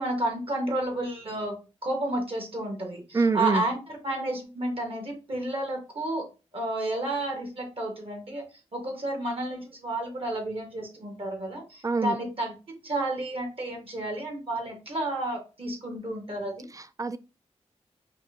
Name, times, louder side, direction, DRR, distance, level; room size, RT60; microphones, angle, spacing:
voice 1, 0.0-1.6 1.8-3.8 4.0-6.3 6.5-12.5 12.8-16.7, right 1 dB, 55° right, 1.4 m, -31 dB
voice 2, 3.1-3.6 11.8-12.2 16.7-17.2, right 4 dB, 30° right, 0.3 m, -25 dB
4.0 x 2.5 x 3.6 m
cardioid pair, 60°, 12 cm